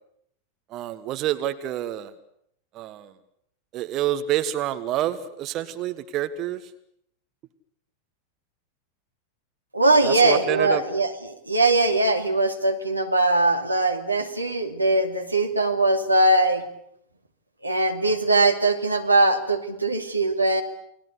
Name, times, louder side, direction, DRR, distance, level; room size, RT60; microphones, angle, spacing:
voice 1, 0.7-2.1 2.7-3.1 3.7-6.6 10.0-10.8, right 12 dB, 35° right, 10 dB, 1.5 m, -27 dB
voice 2, 9.7-16.6 17.6-20.6, right 2 dB, 85° right, 4 dB, 2.6 m, -21 dB
29.0 x 20.5 x 8.3 m, 0.71 s
figure-of-eight pair, 90°, 0 cm